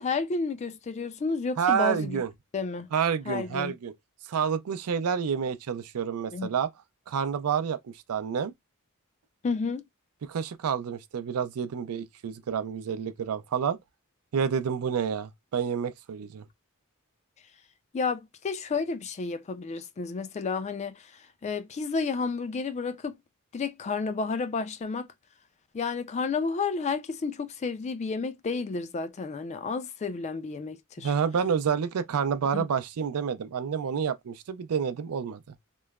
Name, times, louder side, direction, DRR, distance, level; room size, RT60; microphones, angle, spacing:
voice 1, 0.0-2.2 2.5-2.9 3.3-3.7 6.3-6.5 9.4-9.8 17.9-21.0 21.4-23.1 23.5-25.1 25.7-31.1 32.5-32.6, left 4 dB, 30° left, 0.3 m, -31 dB
voice 2, 1.6-2.3 2.9-3.9 4.3-6.7 7.1-7.8 8.1-8.5 10.3-13.8 14.3-16.4 31.0-35.4, right 7 dB, 85° right, 0.4 m, -29 dB
3.0 x 2.0 x 2.2 m
head